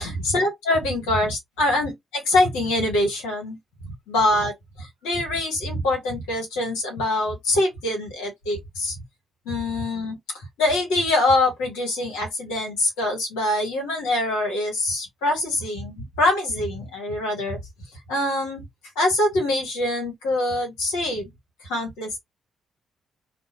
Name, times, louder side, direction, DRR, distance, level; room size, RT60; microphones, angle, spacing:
voice 1, 0.0-3.6 4.1-9.0 9.4-17.6 18.1-18.6 18.9-21.3 21.6-22.2, left 2 dB, 75° left, 1.2 m, -24 dB
2.6 x 2.1 x 2.9 m
hypercardioid pair, 45°, 0 cm